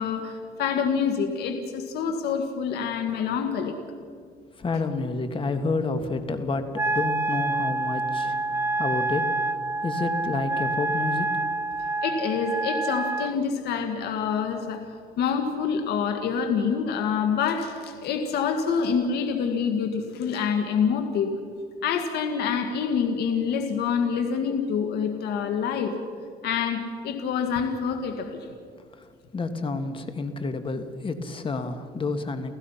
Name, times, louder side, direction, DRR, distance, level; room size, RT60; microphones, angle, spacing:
voice 1, 0.0-3.7 4.7-4.8 12.0-21.4 21.8-25.9 26.4-28.5, left 6 dB, 75° left, 5 dB, 1.9 m, -26 dB
voice 2, 4.6-9.3 9.8-11.3 29.3-32.6, left 3 dB, 30° left, 8 dB, 1.8 m, -29 dB
Wind instrument woodwind instrument, 6.7-13.3, right 2 dB, 15° right, 0.4 m, -27 dB
29.5 x 15.5 x 5.8 m, 2.1 s
cardioid pair, 110°, 17 cm